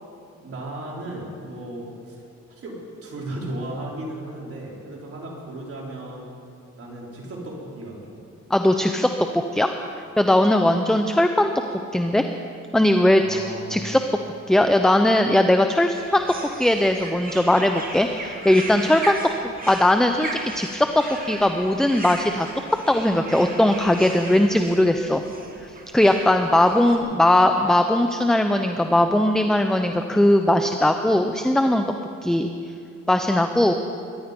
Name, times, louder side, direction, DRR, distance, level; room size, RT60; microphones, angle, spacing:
voice 1, 0.4-2.2 2.5-2.8 3.0-6.3 6.7-8.2 13.2-13.8, right 1 dB, 50° right, -3 dB, 4.4 m, -35 dB
voice 2, 8.5-9.7 10.2-11.5 11.9-12.2 12.7-13.4 13.7-14.0 14.5-16.2 16.6-25.2 25.9-31.9 32.2-32.5 33.1-33.7, left 1 dB, ahead, 6 dB, 0.7 m, -19 dB
sound 1, 15.9-27.0, right 2 dB, 30° right, 2.1 m, -37 dB
23.0 x 11.0 x 5.3 m, 2.5 s
cardioid pair, 90°, 30 cm